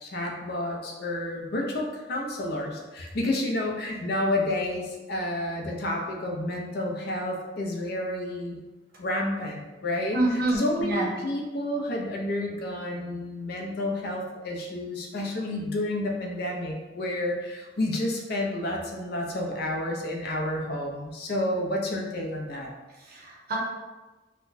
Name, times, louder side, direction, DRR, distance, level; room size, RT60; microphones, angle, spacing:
voice 1, 0.0-8.6 9.0-10.2 10.6-22.7, left 1 dB, 60° left, 0 dB, 0.5 m, -30 dB
voice 2, 10.1-11.1 23.0-23.6, right 1 dB, 55° right, -4 dB, 0.9 m, -27 dB
4.2 x 2.1 x 2.5 m, 1.2 s
head